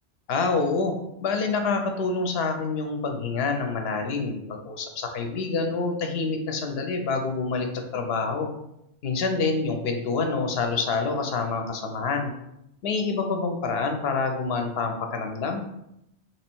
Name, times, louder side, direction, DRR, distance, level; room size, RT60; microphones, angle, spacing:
voice 1, 0.3-0.9 1.2-8.5 9.0-12.3 12.8-15.6, left 4 dB, 65° left, 4 dB, 0.9 m, -27 dB
3.1 x 3.1 x 4.5 m, 0.82 s
omnidirectional pair, 1.2 m